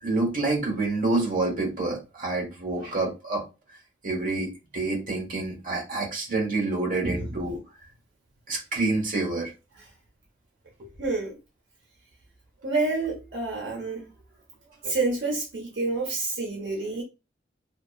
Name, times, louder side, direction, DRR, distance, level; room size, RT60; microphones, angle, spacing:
voice 1, 0.0-3.4 4.0-7.6 8.5-9.5 10.8-10.9, right 2 dB, 45° right, 1.1 m, -27 dB
voice 2, 11.0-11.4 12.6-14.1 14.8-17.0, right 3 dB, 70° right, 0.8 m, -28 dB
2.8 x 2.4 x 2.3 m
head